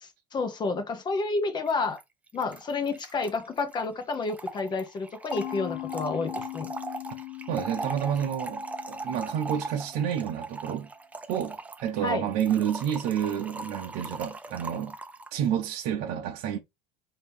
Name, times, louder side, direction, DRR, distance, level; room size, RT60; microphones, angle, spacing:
voice 1, 0.0-2.0 2.3-6.7 12.0-12.3, left 3 dB, 20° left, 0.9 m, -30 dB
Trickle dribble / Fill (with liquid), 1.7-1.8 2.0-2.1 2.3-15.4, right 3 dB, 5° right, 0.4 m, -40 dB
Mallet percussion, 5.3-10.1, left 20 dB, 70° left, 0.6 m, -40 dB
voice 2, 7.5-10.9 11.3-15.0 15.3-16.6, right 9 dB, 55° right, 0.7 m, -29 dB
5.1 x 2.9 x 3.4 m
cardioid pair, 150°, 20 cm